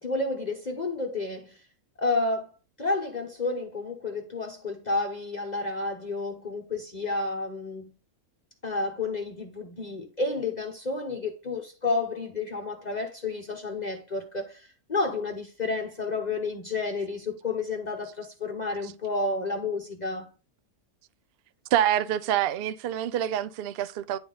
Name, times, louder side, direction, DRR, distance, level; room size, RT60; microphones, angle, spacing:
voice 1, 0.0-1.6 2.0-2.5 2.8-7.9 8.6-20.3, left 3 dB, 35° left, 0.9 m, -31 dB
voice 2, 21.7-24.2, right 11 dB, 75° right, 0.5 m, -26 dB
9.8 x 3.6 x 3.9 m
omnidirectional pair, 1.5 m